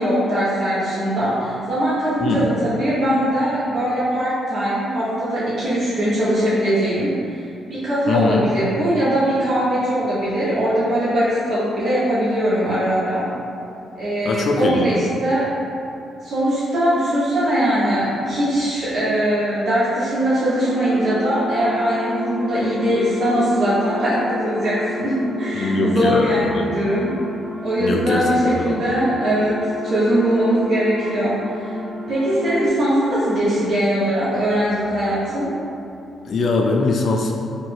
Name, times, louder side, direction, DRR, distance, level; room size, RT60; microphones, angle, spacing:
voice 1, 0.0-7.4 7.7-13.3 14.0-15.6 16.2-27.2 27.6-31.8 32.1-35.5, equal, 70° right, -11 dB, 0.8 m, -21 dB
voice 2, 8.1-8.5 14.3-14.9 25.5-26.7 27.8-28.2 28.6-28.7 36.3-37.3, left 3 dB, 60° left, 1 dB, 0.4 m, -21 dB
sound 1, 20.4-32.7, left 2 dB, 5° right, 0.5 m, -31 dB
3.1 x 2.2 x 3.2 m, 2.7 s
supercardioid pair, 65°, 0 cm